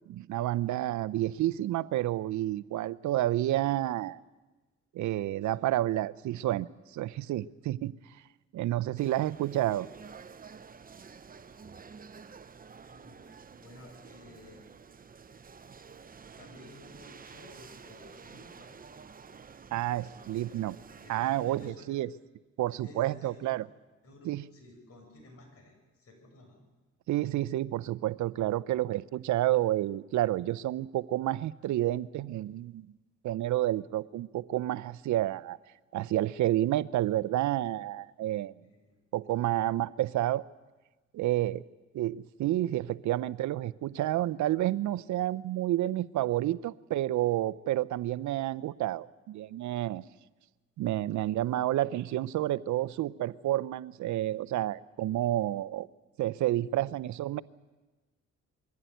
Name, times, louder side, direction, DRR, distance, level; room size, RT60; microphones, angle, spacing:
voice 1, 0.1-4.2 4.9-7.9 8.5-9.9 19.7-20.8 21.1-22.1 22.6-23.6 24.2-24.4 27.1-32.9 33.2-35.6 35.9-38.5 39.1-40.4 41.1-41.6 41.9-50.1 50.8-55.9 56.2-57.4, right 14 dB, 75° right, 18 dB, 0.6 m, -30 dB
sound 1, 9.0-21.7, right 5 dB, 30° right, 0.8 m, -50 dB
voice 2, 12.9-14.6 16.4-18.8 20.9-22.0 22.7-23.5 24.0-26.6 27.1-27.3 38.6-39.0 56.8-56.9, left 2 dB, 50° left, 2 dB, 7.8 m, -54 dB
22.5 x 15.5 x 9.2 m, 1.2 s
cardioid pair, 90°, 30 cm